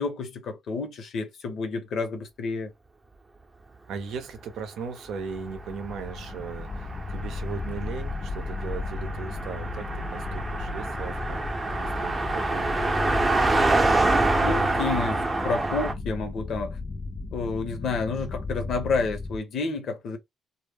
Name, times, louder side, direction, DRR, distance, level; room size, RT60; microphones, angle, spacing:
voice 1, 0.0-2.7 14.4-16.8 17.3-20.2, left 4 dB, 70° left, 0.7 m, -30 dB
voice 2, 3.9-11.4 11.7-12.9, right 6 dB, 85° right, 0.6 m, -38 dB
sound 1, 5.1-19.4, left 3 dB, 35° left, 0.4 m, -34 dB
Car passing by, 5.8-15.9, right 2 dB, 25° right, 0.6 m, -27 dB
2.1 x 2.0 x 3.4 m
cardioid pair, 90°, 0 cm